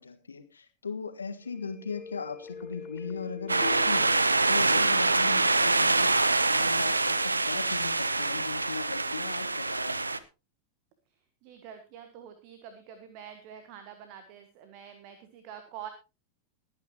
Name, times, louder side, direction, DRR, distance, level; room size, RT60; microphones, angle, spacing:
voice 1, 0.0-4.2 4.5-6.1 6.5-10.1, left 5 dB, 75° left, 9 dB, 1.6 m, -38 dB
sound 1, 1.4-7.1 7.5-7.6, left 5 dB, 30° left, 3.5 m, -45 dB
sound 2, 3.5-10.2, right 3 dB, 80° right, 0.7 m, -25 dB
voice 2, 11.1-15.9, right 9 dB, 45° right, 8 dB, 1.7 m, -46 dB
21.5 x 9.5 x 3.0 m, 0.28 s
figure-of-eight pair, 90°, 0 cm